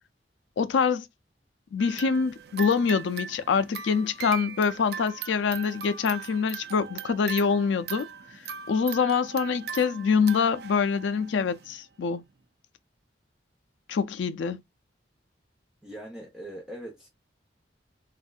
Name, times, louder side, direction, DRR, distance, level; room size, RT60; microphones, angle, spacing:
voice 1, 0.6-1.1 1.7-8.1 8.7-12.2 13.9-14.6, left 5 dB, 90° left, 0.4 m, -25 dB
sound 1, 1.8-11.8, right 7 dB, 60° right, 0.4 m, -40 dB
voice 2, 15.8-17.1, right 1 dB, 5° right, 0.9 m, -41 dB
3.5 x 2.4 x 2.4 m
head